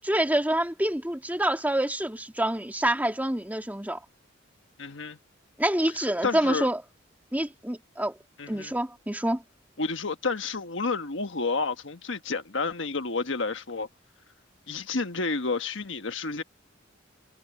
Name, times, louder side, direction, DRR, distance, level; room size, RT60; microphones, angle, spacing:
voice 1, 0.0-4.0 5.6-6.8 7.3-8.1 8.5-9.4, right 1 dB, 10° right, 2.3 m, -27 dB
voice 2, 4.8-5.2 6.2-6.7 8.4-8.7 9.8-13.9 14.7-16.4, left 4 dB, 70° left, 1.4 m, -30 dB
head